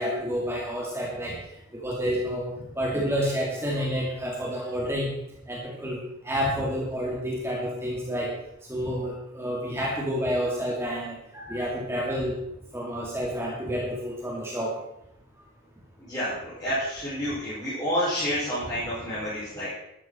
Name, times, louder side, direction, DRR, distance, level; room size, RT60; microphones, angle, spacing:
voice 1, 0.0-1.4 1.7-2.4 2.8-5.1 5.5-6.0 6.2-8.3 8.7-12.3 12.7-14.7, equal, 10° right, -4 dB, 2.4 m, -29 dB
voice 2, 16.1-19.7, equal, 20° left, -12 dB, 6.1 m, -29 dB
13.5 x 12.5 x 4.4 m, 0.82 s
head